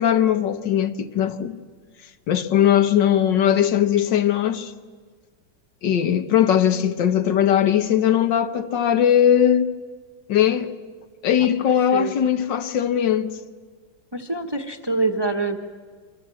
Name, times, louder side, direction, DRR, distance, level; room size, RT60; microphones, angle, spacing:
voice 1, 0.0-1.6 2.3-4.7 5.8-9.7 10.3-10.7 11.2-13.3, left 10 dB, 75° left, 1.7 m, -19 dB
voice 2, 14.1-15.6, right 3 dB, 15° right, 1.0 m, -25 dB
26.5 x 24.5 x 7.7 m
omnidirectional pair, 2.0 m